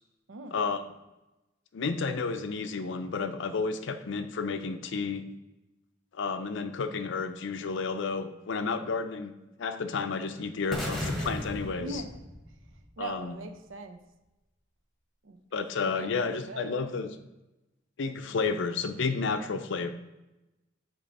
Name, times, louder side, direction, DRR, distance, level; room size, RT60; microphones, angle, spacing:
voice 1, 0.5-0.8 1.7-5.2 6.1-9.3 9.6-12.0 13.0-13.3 15.5-17.1 18.0-19.9, left 4 dB, 65° left, 10 dB, 0.5 m, -31 dB
sound 1, 10.7-12.8, equal, ahead, 1.1 m, -35 dB
voice 2, 11.8-12.2 13.0-14.0 15.2-15.4 15.9-16.7, right 3 dB, 75° right, 7 dB, 0.7 m, -40 dB
8.6 x 3.0 x 4.1 m, 1.0 s
head